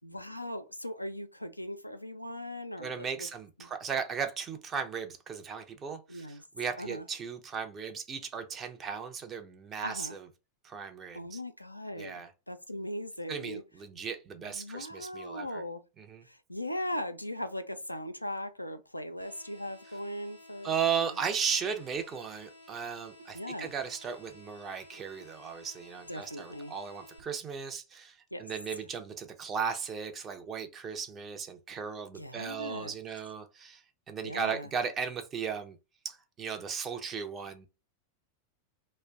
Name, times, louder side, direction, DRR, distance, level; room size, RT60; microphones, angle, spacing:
voice 1, 0.0-3.3 3.6-3.7 6.1-6.4 6.8-7.1 9.8-10.2 11.1-13.6 14.4-15.8 16.2-21.2 23.3-23.7 26.1-26.7 28.3-28.5 32.1-33.0 34.2-34.7, left 1 dB, 85° left, 0.3 m, -39 dB
voice 2, 2.8-10.3 10.6-11.4 11.9-12.3 13.3-15.6 16.0-16.2 20.6-35.8 36.0-37.7, right 6 dB, 25° right, 0.6 m, -36 dB
sound 1, 19.2-27.2, left 1 dB, 85° right, 0.9 m, -54 dB
2.5 x 2.1 x 3.6 m
figure-of-eight pair, 90°, 0 cm